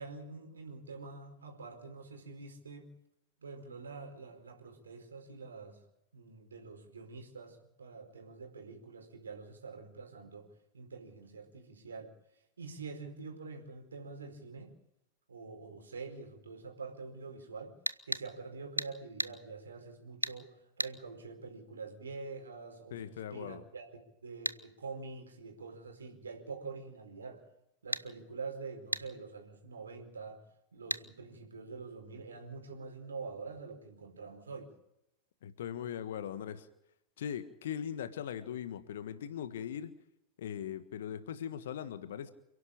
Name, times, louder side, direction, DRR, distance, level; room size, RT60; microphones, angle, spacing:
voice 1, 0.0-2.9 3.4-5.8 6.1-10.5 10.7-12.1 12.6-14.7 15.3-17.8 18.0-27.4 27.8-30.4 30.7-34.7, right 4 dB, 70° right, 3 dB, 4.7 m, -46 dB
sound 1, 17.9-18.3 18.8-18.9 19.2-19.4 20.2-20.4 20.8-21.0 24.5-24.6 27.9-28.1 28.9-29.1 30.9-31.1, right 1 dB, 85° right, 0.7 m, -34 dB
voice 2, 22.9-23.6 35.4-36.7 37.2-40.0 40.4-42.3, left 9 dB, 60° left, 11 dB, 1.5 m, -40 dB
28.5 x 11.5 x 8.8 m, 0.83 s
figure-of-eight pair, 90°, 0 cm